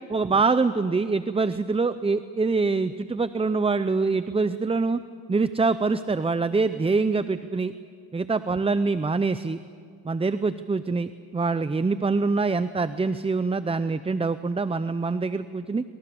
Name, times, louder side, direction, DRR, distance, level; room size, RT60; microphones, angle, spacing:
voice 1, 0.1-5.0 5.3-7.7 8.1-9.6 10.0-15.8, right 4 dB, 15° right, 13 dB, 0.5 m, -24 dB
25.5 x 25.5 x 6.9 m, 2.3 s
cardioid pair, 105°, 43 cm